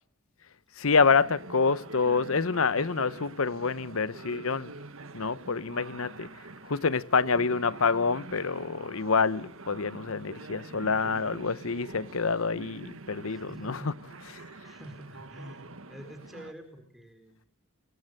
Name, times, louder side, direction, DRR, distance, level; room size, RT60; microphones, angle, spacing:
voice 1, 0.8-4.7 5.1-6.3 6.6-13.9, left 5 dB, 80° left, 1.0 m, -27 dB
sound 1, 1.0-16.5, right 2 dB, 75° right, 1.6 m, -46 dB
voice 2, 13.2-14.0 14.6-17.5, equal, ahead, 4.2 m, -47 dB
28.5 x 23.5 x 6.7 m
head